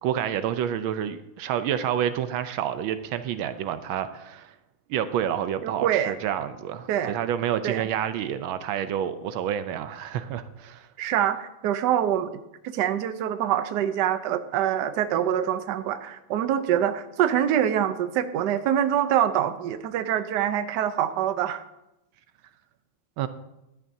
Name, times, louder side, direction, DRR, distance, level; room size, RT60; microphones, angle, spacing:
voice 1, 0.0-4.5 4.9-10.9 23.2-23.3, right 10 dB, 85° right, 11 dB, 1.4 m, -29 dB
voice 2, 5.6-6.2 6.9-7.1 7.6-7.8 11.0-21.6, right 10 dB, 65° right, 10 dB, 1.2 m, -25 dB
15.5 x 11.5 x 2.7 m, 0.91 s
omnidirectional pair, 2.2 m